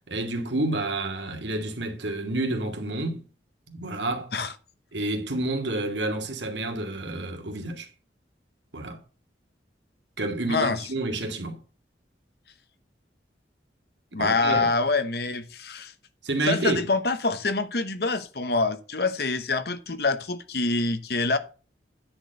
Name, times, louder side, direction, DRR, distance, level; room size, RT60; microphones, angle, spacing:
voice 1, 0.1-3.2 3.7-4.3 4.9-7.9 8.7-9.0 10.2-11.6 14.2-14.7 16.2-16.9, right 2 dB, 85° right, 2.1 m, -29 dB
voice 2, 10.5-10.8 14.1-15.9 16.4-21.4, left 3 dB, 60° left, 1.1 m, -26 dB
9.9 x 4.6 x 6.5 m
head